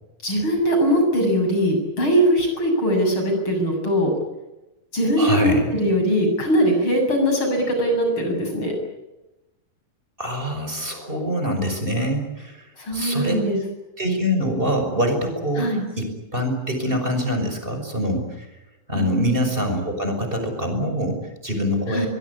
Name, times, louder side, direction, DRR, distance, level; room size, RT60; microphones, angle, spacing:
voice 1, 0.2-4.1 4.9-8.7 12.8-13.6 15.6-15.8 18.9-19.3 21.9-22.1, equal, 30° left, 3 dB, 8.3 m, -21 dB
voice 2, 5.2-5.7 10.2-12.7 12.9-13.4 14.0-18.5 18.9-22.1, equal, 15° right, 5 dB, 5.6 m, -24 dB
24.0 x 22.5 x 9.7 m, 0.99 s
omnidirectional pair, 4.4 m